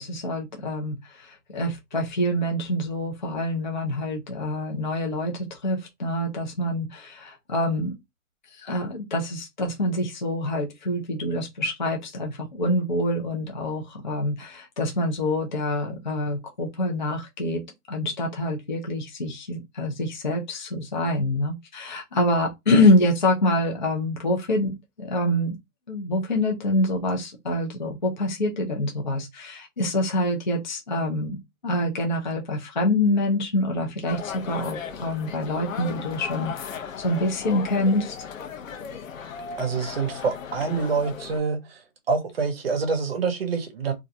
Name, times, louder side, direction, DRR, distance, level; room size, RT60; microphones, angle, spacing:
voice 1, 0.0-7.9 8.5-17.6 17.9-24.7 25.0-25.5 25.9-38.2, left 1 dB, 35° left, 0.4 m, -26 dB
sound 1, 34.1-41.4, left 6 dB, 70° left, 0.7 m, -36 dB
voice 2, 39.6-41.8 42.1-43.9, right 5 dB, 45° right, 0.7 m, -26 dB
2.4 x 2.1 x 2.6 m
hypercardioid pair, 170°, 41 cm